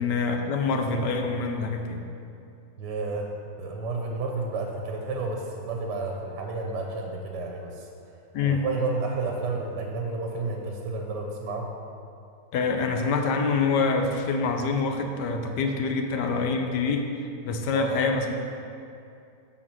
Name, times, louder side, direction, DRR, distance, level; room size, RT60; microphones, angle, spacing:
voice 1, 0.0-2.0 8.3-8.6 12.5-17.1 17.4-18.3, left 4 dB, 75° left, 4 dB, 1.2 m, -26 dB
voice 2, 2.8-3.3 3.6-8.1 8.4-11.7 17.7-18.0, right 3 dB, 70° right, 1 dB, 1.3 m, -31 dB
7.5 x 4.0 x 6.0 m, 2.6 s
omnidirectional pair, 2.0 m